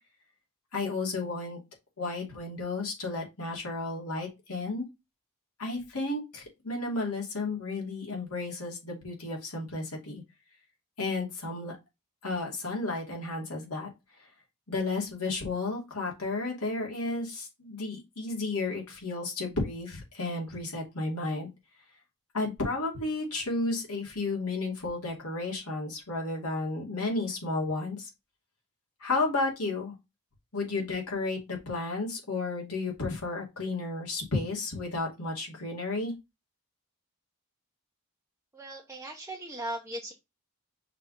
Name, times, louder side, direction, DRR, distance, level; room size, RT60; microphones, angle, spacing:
voice 1, 0.7-1.6 2.0-4.9 5.6-10.2 11.0-11.8 12.2-13.9 14.2-14.3 14.7-21.5 22.3-28.1 29.0-29.9 30.5-36.1, left 3 dB, 75° left, -1 dB, 2.8 m, -32 dB
voice 2, 38.5-40.1, right 1 dB, 10° right, -1 dB, 0.8 m, -38 dB
5.7 x 3.4 x 5.2 m, 0.23 s
head